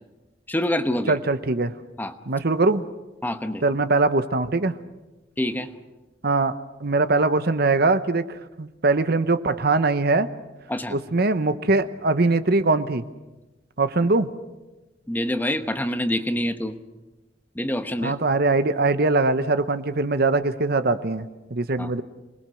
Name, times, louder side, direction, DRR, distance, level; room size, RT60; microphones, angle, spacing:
voice 1, 0.5-1.2 2.0-2.1 3.2-3.6 5.4-5.7 10.7-11.0 15.1-16.8 17.5-18.1 21.8-21.9, left 1 dB, 10° left, 9 dB, 1.1 m, -26 dB
voice 2, 1.1-1.7 2.3-2.8 3.6-4.8 6.2-6.5 6.8-10.3 10.9-13.0 13.8-14.3 18.0-22.0, right 3 dB, 60° right, 11 dB, 1.0 m, -22 dB
27.0 x 20.5 x 6.4 m, 1.1 s
head